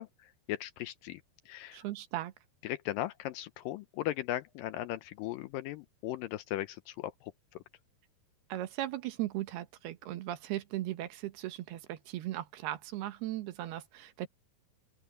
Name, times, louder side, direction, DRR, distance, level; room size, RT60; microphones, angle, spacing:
voice 1, 0.0-1.8 2.6-7.6, left 14 dB, 75° left, 2.1 m, -38 dB
voice 2, 1.7-2.3 8.5-14.3, right 14 dB, 85° right, 3.3 m, -37 dB
open air
omnidirectional pair, 4.4 m